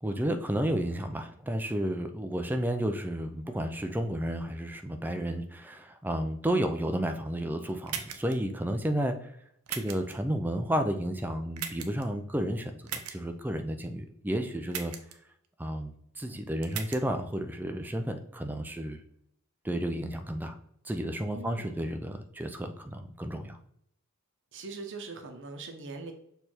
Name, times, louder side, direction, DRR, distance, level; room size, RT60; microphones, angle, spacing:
voice 1, 0.0-9.3 9.7-14.9 15.6-19.0 19.6-20.6 20.8-23.6, right 1 dB, 10° right, 6 dB, 0.5 m, -32 dB
sound 1, 7.9-8.3 9.7-10.1 11.6-12.0 12.9-13.2 14.7-15.1 16.6-17.0, right 8 dB, 85° right, 0.7 m, -37 dB
voice 2, 21.2-21.9 24.5-26.1, right 3 dB, 60° right, 5 dB, 0.9 m, -42 dB
6.4 x 3.4 x 4.4 m, 0.72 s
head